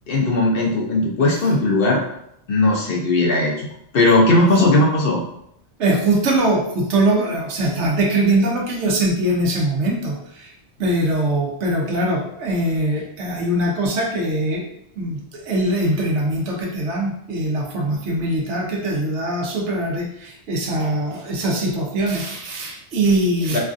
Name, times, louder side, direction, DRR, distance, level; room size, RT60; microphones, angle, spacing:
voice 1, 0.1-2.0 2.5-3.7 3.9-5.2 23.5-23.6, left 2 dB, 60° left, -2 dB, 0.8 m, -17 dB
voice 2, 5.8-10.5 10.8-14.6 15.0-23.6, right 1 dB, 80° right, 0 dB, 1.0 m, -22 dB
3.2 x 2.4 x 2.5 m, 0.75 s
omnidirectional pair, 1.1 m